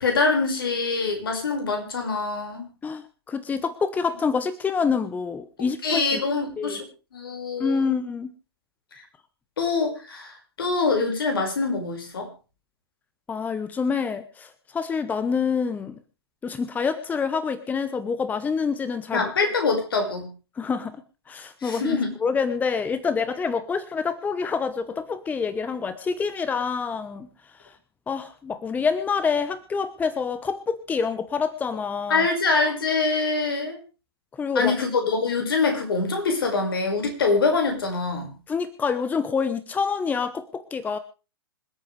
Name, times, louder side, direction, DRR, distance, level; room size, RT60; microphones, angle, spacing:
voice 1, 0.0-2.7 5.8-6.8 7.1-8.0 9.6-12.3 19.1-20.3 21.6-22.1 32.1-33.8 34.5-38.3, left 4 dB, 65° left, 4 dB, 5.4 m, -24 dB
voice 2, 2.8-6.2 6.6-6.8 7.6-8.3 13.3-15.9 16.4-19.3 20.6-21.0 21.3-27.3 27.6-27.8 28.1-32.3 34.4-34.7 38.5-41.0, left 5 dB, 15° left, 12 dB, 1.0 m, -27 dB
26.5 x 8.9 x 3.3 m, 0.33 s
figure-of-eight pair, 110°, 13 cm